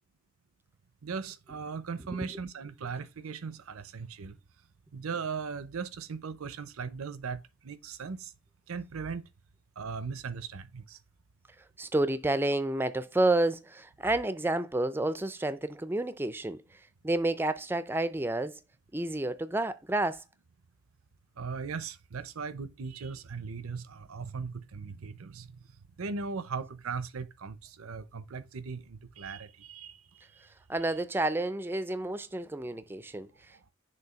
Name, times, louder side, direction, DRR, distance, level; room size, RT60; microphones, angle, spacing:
voice 1, 1.0-4.4 4.9-8.3 8.7-9.3 9.8-11.0 21.4-25.6 26.0-30.0 30.3-30.4, right 5 dB, 85° right, 0.6 m, -38 dB
voice 2, 11.8-18.6 18.9-20.2 30.7-33.7, right 2 dB, 10° right, 0.3 m, -30 dB
6.6 x 2.7 x 5.7 m
head